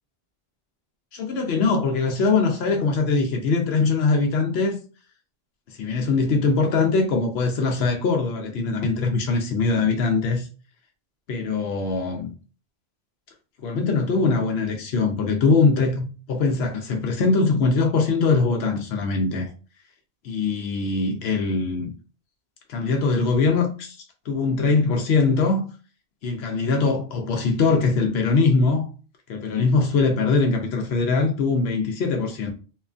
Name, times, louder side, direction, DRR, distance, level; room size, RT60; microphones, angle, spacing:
voice 1, 1.1-4.8 5.8-10.5 11.3-12.3 13.6-19.5 20.2-21.9 22.7-24.0 24.3-25.6 26.2-28.9 29.3-32.5, left 4 dB, 85° left, 0.9 m, -22 dB
2.8 x 2.3 x 2.4 m
omnidirectional pair, 1.0 m